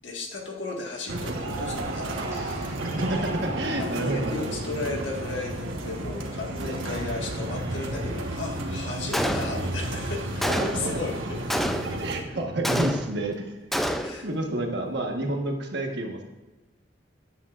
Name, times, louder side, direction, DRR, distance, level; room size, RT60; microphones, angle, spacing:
voice 1, 0.0-2.9 3.7-11.2 11.5-11.6 14.0-14.8, left 3 dB, 65° left, 0 dB, 1.7 m, -35 dB
sound 1, 1.1-12.2, right 1 dB, 90° right, 1.3 m, -32 dB
sound 2, 2.3-4.2, right 1 dB, 15° right, 3.4 m, -46 dB
voice 2, 2.9-4.6 12.0-13.5 14.2-16.2, right 1 dB, 60° right, 2 dB, 1.3 m, -29 dB
Gunshot gunfire, 9.1-9.8 10.4-11.0 11.5-12.1 12.6-13.3 13.7-14.3, equal, ahead, 0.4 m, -28 dB
13.5 x 9.9 x 2.5 m, 1.1 s
head